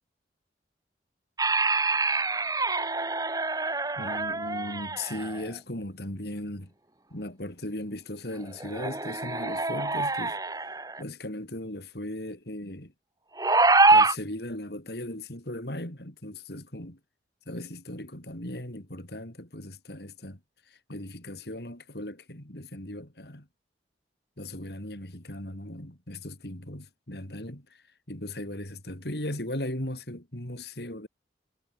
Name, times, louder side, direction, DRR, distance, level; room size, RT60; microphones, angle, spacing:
sound 1, 1.4-5.5 8.4-11.0 13.4-14.2, right 3 dB, 20° right, 2.9 m, -25 dB
voice 1, 4.0-6.7 7.1-10.4 11.0-12.9 13.9-17.0 17.5-20.4 20.7-23.5 24.4-31.1, left 1 dB, 65° left, 5.1 m, -37 dB
head